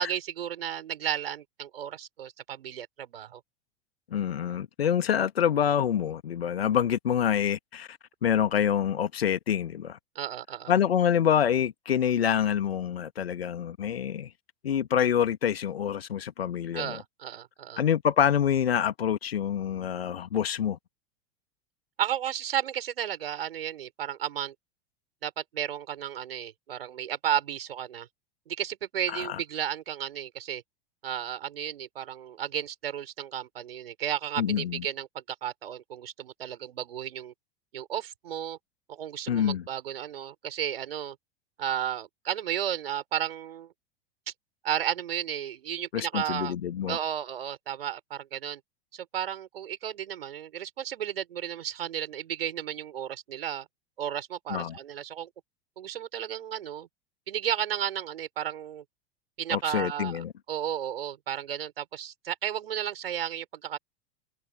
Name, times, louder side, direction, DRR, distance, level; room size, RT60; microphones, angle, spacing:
voice 1, 0.0-3.4 10.1-10.7 16.7-17.8 22.0-24.5 25.2-28.1 28.5-30.6 31.0-37.3 37.7-38.6 38.9-41.2 41.6-43.7 44.6-46.5 46.9-48.6 48.9-53.7 54.0-55.3 55.8-56.9 57.3-58.8 59.4-63.8, right 10 dB, 65° right, 5.1 m, -33 dB
voice 2, 4.1-10.0 10.7-14.3 14.6-17.0 17.8-20.8 29.1-29.4 34.4-34.9 39.3-39.6 45.9-47.0 54.5-54.8 59.5-60.3, left 9 dB, 70° left, 1.8 m, -26 dB
figure-of-eight pair, 90°, 32 cm